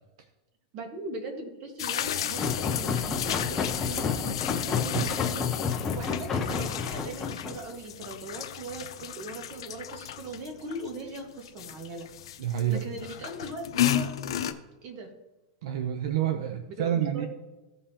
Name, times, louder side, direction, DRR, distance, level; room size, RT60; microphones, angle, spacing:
voice 1, 0.7-4.4 4.6-12.1 12.7-14.1 14.8-15.1 16.7-17.3, right 2 dB, 40° right, 4 dB, 1.7 m, -40 dB
sound 1, 1.8-14.5, left 11 dB, 85° left, 0.7 m, -34 dB
sound 2, 2.3-7.7, left 5 dB, 15° left, 0.7 m, -30 dB
voice 2, 12.4-12.8 15.6-17.3, right 10 dB, 70° right, 8 dB, 0.6 m, -28 dB
15.0 x 5.5 x 2.9 m, 1.1 s
supercardioid pair, 155°, 3 cm